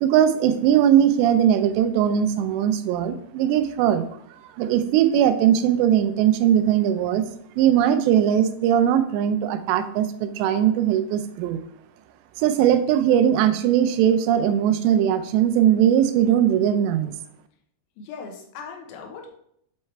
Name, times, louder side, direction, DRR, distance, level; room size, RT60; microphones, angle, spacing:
voice 1, 0.0-4.1 4.6-7.2 7.6-11.6 12.4-17.1, right 10 dB, 90° right, 10 dB, 2.8 m, -20 dB
voice 2, 18.0-19.3, left 5 dB, 75° left, 2 dB, 2.6 m, -38 dB
7.5 x 4.6 x 3.2 m, 0.70 s
omnidirectional pair, 4.9 m